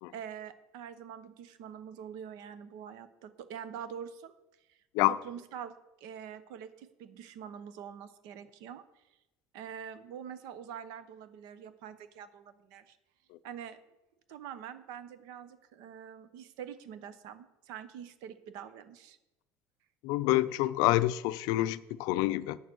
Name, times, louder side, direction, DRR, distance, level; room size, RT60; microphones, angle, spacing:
voice 1, 0.1-4.3 4.7-4.8 5.1-9.0 9.5-13.0 13.4-13.8 14.3-19.2, right 8 dB, 65° right, 0.9 m, -45 dB
voice 2, 20.0-22.6, left 17 dB, 65° left, 0.4 m, -27 dB
9.0 x 7.0 x 6.2 m
cardioid pair, 175°, 7 cm